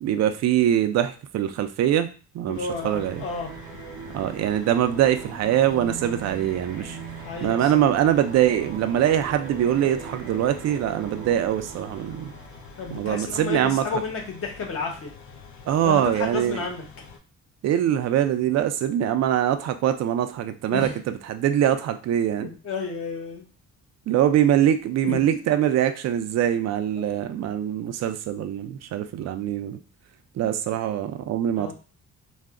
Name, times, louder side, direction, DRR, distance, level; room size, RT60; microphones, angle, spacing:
voice 1, 0.0-2.1 2.3-3.2 4.1-7.0 7.4-12.3 12.9-13.8 15.7-16.6 17.6-22.5 24.1-29.8 30.4-31.7, right 11 dB, 60° right, 9 dB, 0.4 m, -23 dB
sound 1, 2.5-17.2, left 5 dB, 70° left, 0.6 m, -47 dB
voice 2, 2.5-3.5 7.2-7.7 12.8-15.1 15.8-16.9 20.7-21.0 22.4-23.4 25.0-25.2 31.6-31.7, left 4 dB, 50° left, 0 dB, 1.0 m, -31 dB
sound 2, 2.7-13.2, right 6 dB, 80° right, 0.8 m, -40 dB
2.3 x 2.1 x 3.5 m, 0.36 s
cardioid pair, 90°, 30 cm